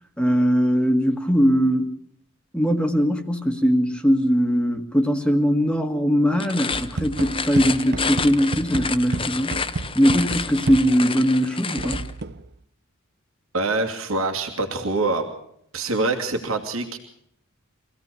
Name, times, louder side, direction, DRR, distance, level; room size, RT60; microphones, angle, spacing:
voice 1, 0.2-1.9 2.5-9.6 9.9-12.0, equal, 5° left, 6 dB, 1.6 m, -20 dB
sound 1, 6.3-12.1, left 5 dB, 25° left, 1.0 m, -30 dB
sound 2, 6.7-11.2 11.8-12.5, right 3 dB, 55° right, 0.8 m, -31 dB
voice 2, 13.5-15.3 15.7-17.0, right 3 dB, 80° right, 3 dB, 2.6 m, -25 dB
25.0 x 16.5 x 6.9 m, 0.71 s
head